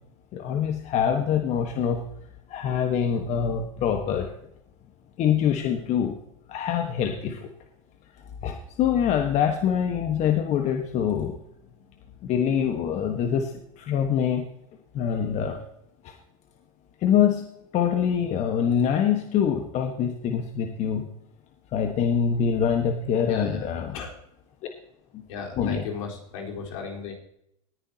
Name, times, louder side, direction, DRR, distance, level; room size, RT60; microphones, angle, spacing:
voice 1, 0.3-2.0 2.5-4.3 5.2-6.1 6.5-7.4 8.4-11.4 12.2-14.5 14.9-15.6 16.0-16.1 17.0-17.4 17.7-21.1 21.7-23.9 25.1-25.2 25.6-25.8, left 8 dB, 40° left, 4 dB, 1.4 m, -24 dB
voice 2, 23.2-24.1 25.3-27.1, left 5 dB, 70° left, -1 dB, 4.1 m, -36 dB
19.0 x 10.5 x 2.9 m, 0.76 s
supercardioid pair, 115°, 18 cm